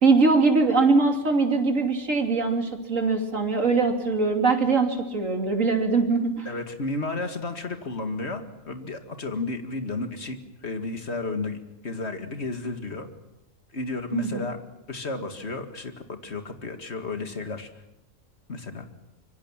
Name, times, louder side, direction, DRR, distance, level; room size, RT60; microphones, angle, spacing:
voice 1, 0.0-6.5 14.1-14.4, right 4 dB, 65° right, 4 dB, 3.2 m, -22 dB
voice 2, 6.5-11.6 11.8-13.1 13.7-14.6 14.9-17.7 18.5-18.9, left 3 dB, 50° left, 7 dB, 2.3 m, -32 dB
25.5 x 24.0 x 7.4 m, 0.93 s
omnidirectional pair, 1.5 m